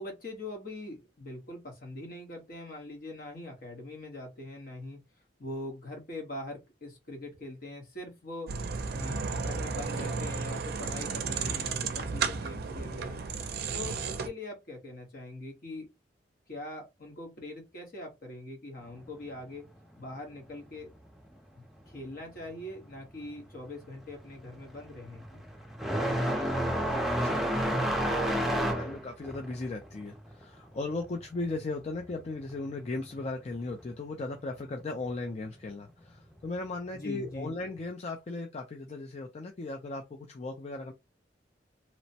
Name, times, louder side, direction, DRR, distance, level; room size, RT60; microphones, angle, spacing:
voice 1, 0.0-5.0 5.4-8.5 8.9-13.2 13.7-15.9 16.5-19.7 20.0-20.9 21.5-25.4 36.9-37.6, left 1 dB, 55° left, 1.1 m, -42 dB
sound 1, 8.5-14.3, right 5 dB, 60° right, 0.4 m, -33 dB
sound 2, 23.2-23.5 23.8-32.2 32.5-33.5 34.5-34.6 35.4-35.5 37.2-37.4, equal, ahead, 0.6 m, -31 dB
voice 2, 26.0-40.9, left 3 dB, 40° left, 0.4 m, -38 dB
3.0 x 2.1 x 2.7 m
head